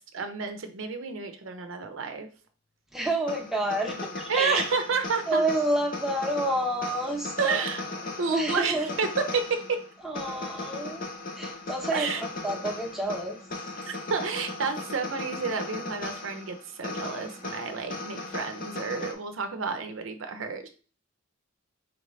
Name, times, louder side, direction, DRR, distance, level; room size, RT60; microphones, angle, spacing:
voice 1, 0.1-2.3 4.3-5.4 7.4-7.8 8.2-9.1 9.3-9.8 11.9-12.2 13.9-20.7, right 5 dB, 70° right, 7 dB, 0.6 m, -30 dB
voice 2, 2.9-4.7 5.3-7.6 8.3-8.9 10.0-11.1 11.3-13.4, right 1 dB, ahead, 0 dB, 0.7 m, -29 dB
sound 1, 3.3-19.1, left 2 dB, 45° left, 0.7 m, -38 dB
4.5 x 2.7 x 3.1 m, 0.37 s
head